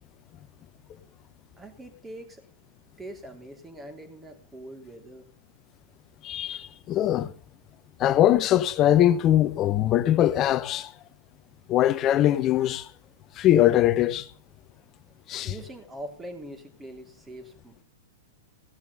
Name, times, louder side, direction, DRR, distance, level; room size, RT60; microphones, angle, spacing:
voice 1, 1.6-2.4 3.0-5.2 15.4-17.8, right 1 dB, 15° right, 3.2 m, -42 dB
voice 2, 6.2-7.3 8.0-10.9 11.7-12.9 13.4-14.2 15.3-15.5, left 12 dB, 35° left, 1.0 m, -21 dB
16.5 x 7.1 x 6.8 m
hypercardioid pair, 120°, 0 cm